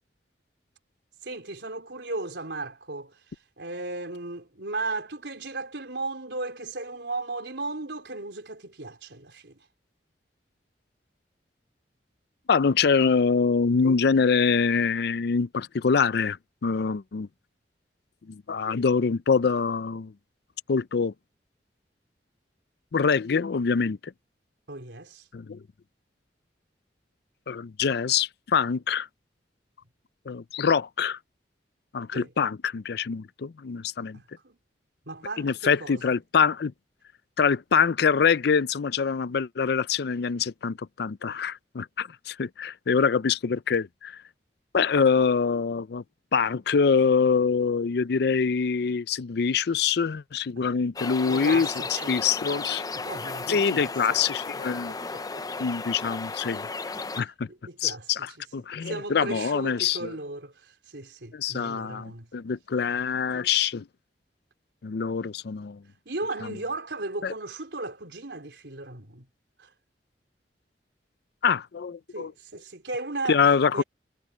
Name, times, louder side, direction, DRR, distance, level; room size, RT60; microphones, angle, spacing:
voice 1, 1.2-3.2 3.6-9.6 24.7-25.3 32.1-32.3 34.1-34.6 35.1-36.2 51.3-52.2 52.9-54.2 54.9-55.7 57.5-58.1 58.8-62.3 66.1-69.3 69.6-69.7 72.1-73.4 73.7-73.8, right 2 dB, 80° right, 3.9 m, -36 dB
voice 2, 12.5-16.4 16.6-17.3 18.3-20.1 20.7-21.1 22.9-24.1 25.3-25.6 27.5-29.1 30.3-31.2 31.9-34.2 35.4-36.7 37.4-44.2 44.7-46.0 46.3-52.8 53.5-54.9 55.6-56.7 57.2-57.5 57.8-60.1 61.3-63.9 64.8-65.8 67.2-67.3 71.4-72.3 73.3-73.8, left 5 dB, 65° left, 0.5 m, -25 dB
sound 1, 51.0-57.2, left 4 dB, 20° left, 0.6 m, -34 dB
head